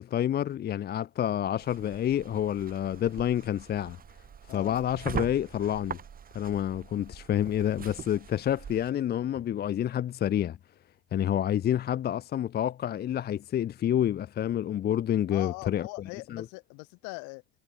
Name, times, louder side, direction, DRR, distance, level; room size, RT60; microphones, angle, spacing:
voice 1, 0.0-4.0 4.5-6.0 6.3-10.6 11.1-15.9 16.3-16.4, left 11 dB, 25° left, 1.1 m, -28 dB
sound 1, 1.6-8.9, right 7 dB, 25° right, 3.8 m, -42 dB
voice 2, 15.3-17.4, left 33 dB, 55° left, 5.1 m, -41 dB
supercardioid pair, 120°, 36 cm